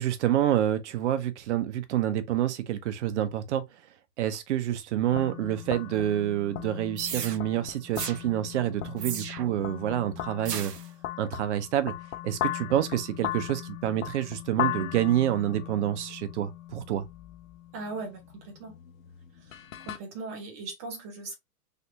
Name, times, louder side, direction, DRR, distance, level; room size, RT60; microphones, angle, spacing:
voice 1, 0.0-3.6 4.2-10.7 11.2-11.9 12.2-17.1, right 11 dB, 50° right, 0.7 m, -28 dB
sound 1, 5.1-20.0, left 13 dB, 55° left, 0.6 m, -38 dB
sound 2, 7.0-7.4 8.0-8.2 9.0-9.6 10.5-10.9, right 8 dB, 90° right, 0.6 m, -35 dB
voice 2, 17.7-18.7 19.4-21.3, right 3 dB, 10° right, 0.3 m, -39 dB
3.3 x 2.8 x 2.7 m
figure-of-eight pair, 110°, 47 cm